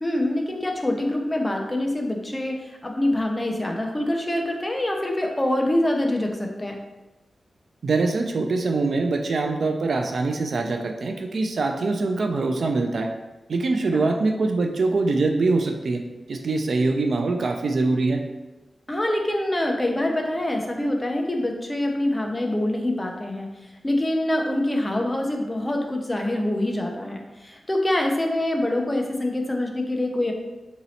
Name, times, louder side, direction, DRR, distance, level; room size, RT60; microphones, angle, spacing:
voice 1, 0.0-6.8 13.9-14.0 18.9-30.3, left 1 dB, 15° left, 1 dB, 0.4 m, -25 dB
voice 2, 7.8-13.1 13.5-16.0 16.3-18.2, right 3 dB, 60° right, 3 dB, 0.3 m, -23 dB
3.0 x 2.8 x 4.0 m, 1.1 s
wide cardioid pair, 170°, 0 cm